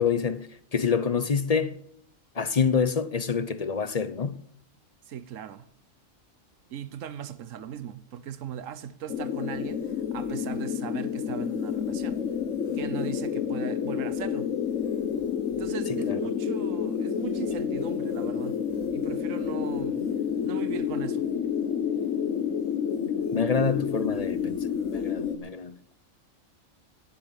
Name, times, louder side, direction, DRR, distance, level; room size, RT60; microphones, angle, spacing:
voice 1, 0.0-1.8 2.4-4.4 15.9-16.2 23.3-25.8, left 6 dB, 40° left, 0.7 m, -27 dB
voice 2, 5.1-5.7 6.7-12.2 12.7-14.5 15.6-18.6 18.9-20.0 20.4-21.3, right 9 dB, 75° right, 1.3 m, -39 dB
sound 1, 9.1-25.4, left 7 dB, 70° left, 1.4 m, -29 dB
16.0 x 8.4 x 8.9 m
omnidirectional pair, 1.3 m